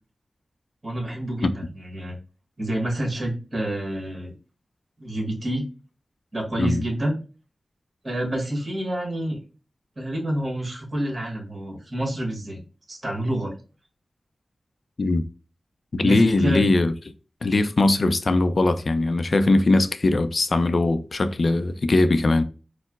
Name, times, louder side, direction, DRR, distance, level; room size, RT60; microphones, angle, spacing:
voice 1, 0.8-2.2 2.6-4.3 5.0-5.7 6.3-7.2 8.0-9.4 10.0-12.6 12.9-13.5 16.0-16.6, right 1 dB, 40° right, 1.3 m, -28 dB
voice 2, 15.9-16.9 17.4-22.4, left 2 dB, 55° left, 0.3 m, -20 dB
4.3 x 2.0 x 2.3 m
wide cardioid pair, 85°, 0 cm